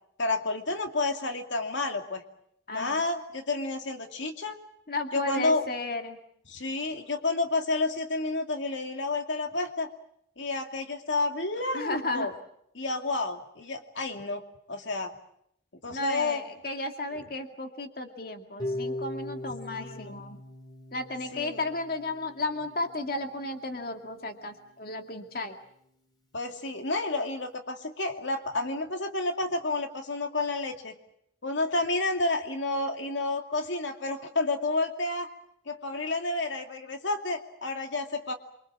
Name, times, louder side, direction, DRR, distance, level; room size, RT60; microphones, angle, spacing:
voice 1, 0.2-2.2 2.7-4.6 5.1-5.6 6.5-9.9 10.4-12.3 12.7-14.4 14.7-15.1 15.8-16.5 17.1-17.2 19.7-20.2 21.3-21.7 26.3-31.0 31.4-35.3 35.7-38.3, left 2 dB, 85° left, 5 dB, 2.4 m, -30 dB
voice 2, 2.7-3.0 4.9-6.2 11.7-12.3 15.9-20.4 20.9-25.6, left 2 dB, 50° left, 5 dB, 2.3 m, -34 dB
Harp, 18.6-24.7, left 1 dB, 20° left, 4.2 m, -40 dB
28.5 x 24.5 x 7.4 m, 0.74 s
head